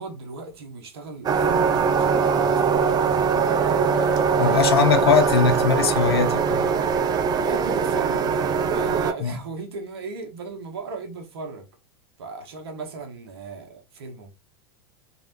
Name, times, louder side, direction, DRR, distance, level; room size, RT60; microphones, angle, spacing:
voice 1, 0.0-5.5 7.4-8.5 8.7-11.7 12.2-14.3, right 4 dB, 80° right, 1.3 m, -37 dB
sound 1, 1.2-9.1, right 6 dB, 30° right, 0.6 m, -21 dB
voice 2, 4.4-6.7 9.2-9.3, left 6 dB, 85° left, 0.8 m, -20 dB
3.4 x 3.3 x 3.1 m
hypercardioid pair, 100°, 13 cm